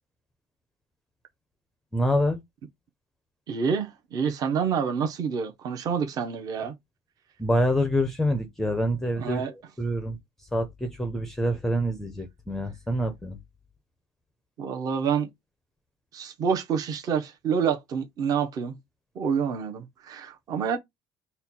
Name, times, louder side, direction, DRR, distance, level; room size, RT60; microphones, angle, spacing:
voice 1, 1.9-2.4 7.4-9.4 9.8-13.4, equal, 5° left, 0.5 m, -26 dB
voice 2, 3.5-6.7 9.2-9.5 14.6-15.3 16.1-18.8 19.1-20.8, right 6 dB, 40° right, 0.8 m, -27 dB
4.2 x 2.2 x 4.1 m
cardioid pair, 155°, 10 cm